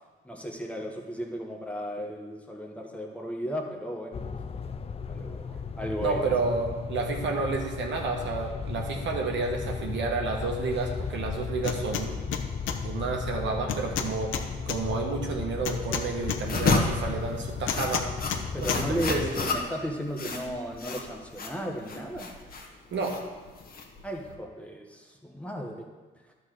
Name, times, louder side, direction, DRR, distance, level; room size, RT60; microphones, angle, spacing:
voice 1, 0.2-4.2 5.1-6.2 18.5-22.3 24.0-25.9, equal, 5° left, 1 dB, 1.3 m, -35 dB
sound 1, 4.1-19.3, left 5 dB, 30° left, 0.5 m, -35 dB
voice 2, 6.0-12.2 12.8-14.4 14.7-18.1 18.6-19.2 22.9-23.2, right 3 dB, 70° right, 1 dB, 1.4 m, -30 dB
sound 2, 11.6-12.1 12.3-12.8 13.7-14.8 15.7-16.8 17.7-18.4 18.7-18.8, left 9 dB, 80° left, 0.7 m, -31 dB
sound 3, 16.4-24.3, left 3 dB, 45° left, 1.3 m, -31 dB
11.0 x 4.0 x 6.6 m, 1.3 s
cardioid pair, 90°, 20 cm